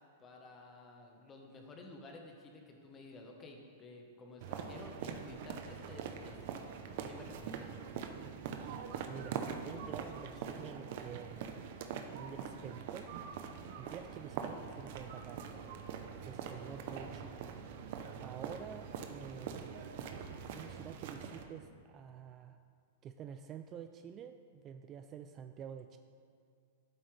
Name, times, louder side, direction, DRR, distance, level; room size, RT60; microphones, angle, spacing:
voice 1, 0.2-6.4 7.1-7.7, left 2 dB, 20° left, 2 dB, 1.2 m, -53 dB
sound 1, 4.4-21.4, right 7 dB, 55° right, 0.8 m, -43 dB
voice 2, 9.1-11.4 12.1-13.1 13.8-15.5 16.2-17.4 18.2-19.8 20.5-22.6 23.0-26.0, right 8 dB, 25° right, 8 dB, 0.3 m, -48 dB
12.0 x 8.1 x 3.4 m, 2.2 s
supercardioid pair, 150°, 0 cm